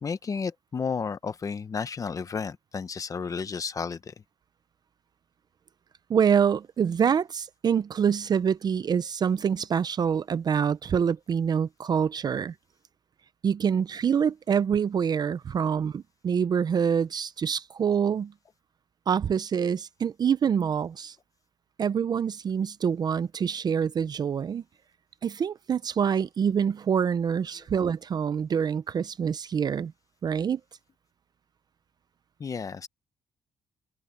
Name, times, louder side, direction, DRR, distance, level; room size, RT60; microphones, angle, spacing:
voice 1, 0.0-4.1 32.4-32.9, left 5 dB, 30° left, 1.0 m, -32 dB
voice 2, 6.1-12.5 13.4-18.3 19.1-21.2 21.8-24.6 25.2-29.9 30.2-30.6, right 7 dB, 35° right, 0.5 m, -26 dB
open air
cardioid pair, 140°, 11 cm